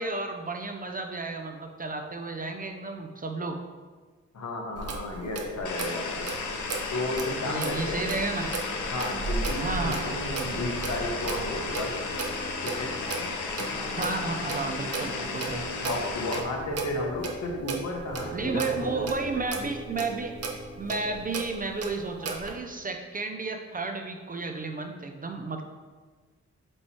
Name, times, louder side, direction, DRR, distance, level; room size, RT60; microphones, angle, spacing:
voice 1, 0.0-3.6 7.4-8.5 9.6-10.6 13.8-16.0 18.3-20.4 20.8-25.6, right 3 dB, 30° right, 4 dB, 0.4 m, -32 dB
voice 2, 4.3-6.3 6.9-8.0 8.8-11.9 12.6-12.9 15.8-19.0, left 1 dB, 65° left, 0 dB, 1.2 m, -33 dB
Clock, 4.7-22.5, right 4 dB, 55° right, 0.7 m, -36 dB
sound 1, 5.6-16.4, left 4 dB, 90° left, 0.7 m, -34 dB
sound 2, 9.5-21.3, equal, 35° left, 0.6 m, -42 dB
7.6 x 3.0 x 4.3 m, 1.4 s
wide cardioid pair, 175°, 29 cm